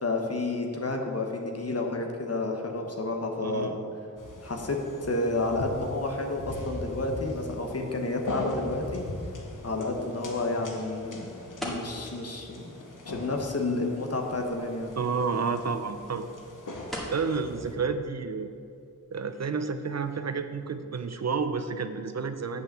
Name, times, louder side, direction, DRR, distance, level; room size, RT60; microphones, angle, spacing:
voice 1, 0.0-3.8 4.4-9.0 9.6-11.3 11.6-12.7 13.1-15.0, left 2 dB, 50° left, 2 dB, 1.2 m, -30 dB
voice 2, 3.4-3.8 15.0-16.3 17.1-18.5 19.1-22.6, right 5 dB, 55° right, 9 dB, 0.6 m, -30 dB
sound 1, 4.2-17.8, left 1 dB, 90° left, 1.1 m, -40 dB
sound 2, 7.5-20.7, equal, ahead, 2.0 m, -46 dB
8.0 x 5.6 x 7.3 m, 2.5 s
wide cardioid pair, 65°, 31 cm